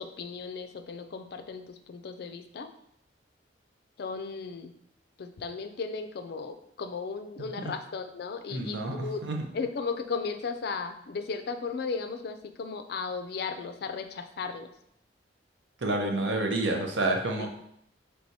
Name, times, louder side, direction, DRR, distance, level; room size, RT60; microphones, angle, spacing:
voice 1, 0.0-2.7 4.0-4.7 5.2-9.2 9.5-14.7 17.4-17.5, left 5 dB, 60° left, 7 dB, 0.4 m, -35 dB
voice 2, 7.4-7.7 8.5-9.4 15.8-17.5, right 2 dB, 80° right, 2 dB, 0.7 m, -29 dB
4.6 x 3.3 x 2.7 m, 0.73 s
head